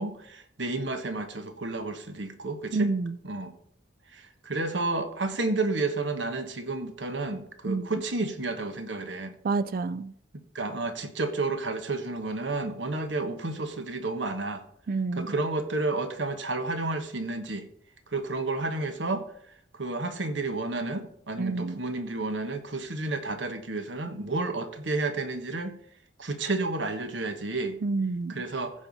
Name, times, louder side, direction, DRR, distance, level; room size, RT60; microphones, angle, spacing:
voice 1, 0.0-2.9 3.2-3.5 4.1-9.3 10.5-14.6 15.1-17.6 18.1-19.3 19.7-25.8 26.2-27.8 28.3-28.7, right 2 dB, 75° right, 1.1 m, -31 dB
voice 2, 2.7-3.2 7.7-7.9 9.4-10.1 14.9-15.3 21.4-21.8 27.8-28.3, right 3 dB, 50° right, 0.4 m, -28 dB
15.0 x 5.5 x 4.0 m
head